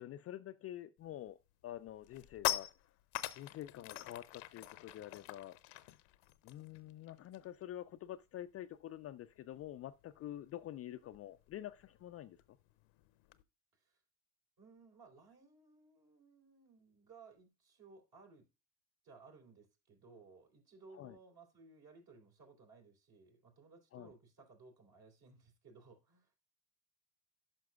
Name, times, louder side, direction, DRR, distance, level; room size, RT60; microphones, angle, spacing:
voice 1, 0.0-2.9 3.3-5.8 6.4-12.6 20.9-21.2 23.9-24.1, left 12 dB, 35° left, 0.4 m, -48 dB
sound 1, 1.1-1.3 1.7-7.6 7.9-8.1 8.4-13.4, left 17 dB, 65° left, 0.7 m, -44 dB
voice 2, 14.6-18.4 19.0-26.3, right 4 dB, 55° right, 3.8 m, -60 dB
11.5 x 5.8 x 2.3 m
hypercardioid pair, 65°, 46 cm